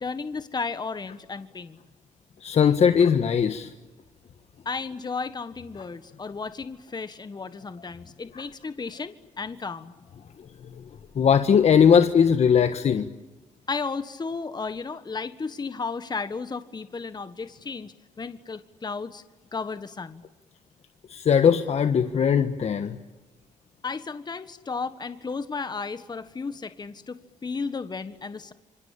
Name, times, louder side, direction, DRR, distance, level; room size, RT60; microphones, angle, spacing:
voice 1, 0.0-1.8 4.6-9.9 13.7-19.2 19.5-20.2 23.8-28.5, left 4 dB, 30° left, 11 dB, 1.5 m, -34 dB
voice 2, 2.4-3.7 11.1-13.1 21.1-23.0, left 7 dB, 55° left, 8 dB, 1.4 m, -19 dB
27.5 x 24.5 x 8.8 m, 1.1 s
supercardioid pair, 65°, 13 cm